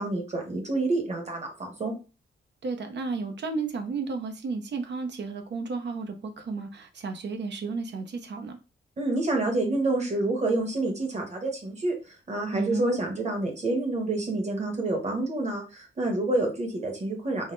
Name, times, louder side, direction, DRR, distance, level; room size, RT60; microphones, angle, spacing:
voice 1, 0.0-1.9 9.0-17.5, right 2 dB, 35° right, 1.1 m, -28 dB
voice 2, 2.6-8.6 12.5-13.0, right 4 dB, 60° right, 0.6 m, -32 dB
3.9 x 2.0 x 3.9 m
wide cardioid pair, 170°, 20 cm